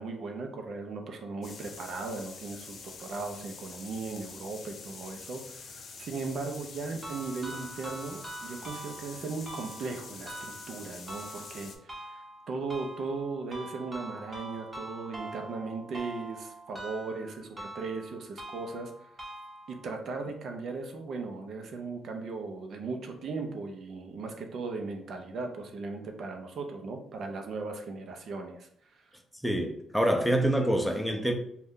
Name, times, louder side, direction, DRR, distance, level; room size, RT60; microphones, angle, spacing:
voice 1, 0.0-12.2 12.5-18.9 19.7-28.7, right 4 dB, 60° right, 0.5 m, -37 dB
sound 1, 1.4-11.8, left 4 dB, 60° left, 0.5 m, -46 dB
sound 2, 7.0-20.0, right 1 dB, 30° right, 0.8 m, -44 dB
voice 2, 29.4-31.3, right 1 dB, ahead, 0.5 m, -26 dB
2.6 x 2.2 x 3.6 m
cardioid pair, 90°, 0 cm